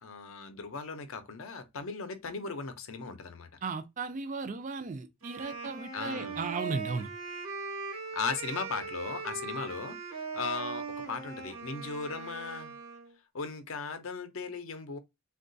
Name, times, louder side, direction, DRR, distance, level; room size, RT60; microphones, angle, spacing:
voice 1, 0.0-3.5 5.9-6.4 8.1-10.0 10.3-12.7 13.3-15.0, left 4 dB, 65° left, 0.6 m, -37 dB
voice 2, 3.6-7.1, right 4 dB, 35° right, 0.4 m, -36 dB
Wind instrument woodwind instrument, 5.2-13.1, right 4 dB, 75° right, 1.1 m, -40 dB
3.7 x 2.3 x 2.6 m
head